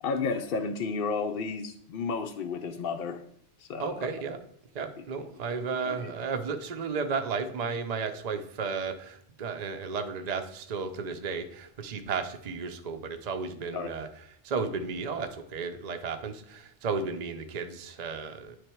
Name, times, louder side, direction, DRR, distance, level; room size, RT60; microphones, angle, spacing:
voice 1, 0.0-3.2 3.6-4.1 5.0-5.1 5.9-6.1 13.7-13.9, left 4 dB, 60° left, 5 dB, 0.6 m, -32 dB
voice 2, 3.8-4.4 4.7-14.1 14.4-18.6, right 5 dB, 45° right, 7 dB, 0.6 m, -33 dB
9.5 x 3.3 x 4.5 m, 0.71 s
omnidirectional pair, 1.2 m